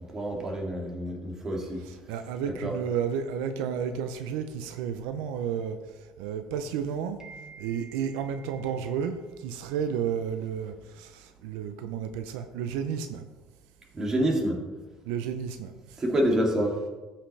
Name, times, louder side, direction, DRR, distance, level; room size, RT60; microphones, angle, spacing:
voice 1, 0.1-1.8 2.4-2.7 7.2-8.0 13.9-14.6 16.0-16.8, right 1 dB, 25° right, 0 dB, 2.2 m, -28 dB
voice 2, 2.1-5.8 6.2-7.2 7.6-9.2 9.4-13.2 15.1-15.7, right 7 dB, 90° right, 8 dB, 0.6 m, -32 dB
14.0 x 5.8 x 3.3 m, 1.2 s
cardioid pair, 120°, 2 cm